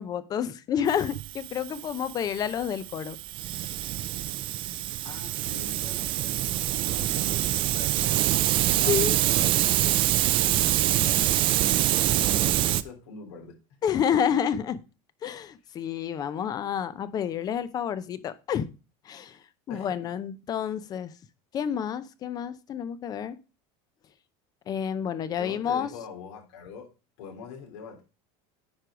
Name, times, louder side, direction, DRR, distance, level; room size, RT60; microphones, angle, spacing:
voice 1, 0.0-3.2 8.9-9.2 13.8-14.8 15.2-18.7 19.1-19.4 19.7-21.1 21.5-23.4 24.7-25.9, left 8 dB, 25° left, 0.5 m, -29 dB
Hiss, 0.9-12.8, right 14 dB, 35° right, 0.4 m, -25 dB
voice 2, 5.0-8.3 8.6-10.1 10.4-13.6 19.7-20.1 25.3-26.9 27.2-28.0, left 5 dB, 85° left, 3.5 m, -43 dB
9.5 x 4.6 x 5.0 m
cardioid pair, 160°, 14 cm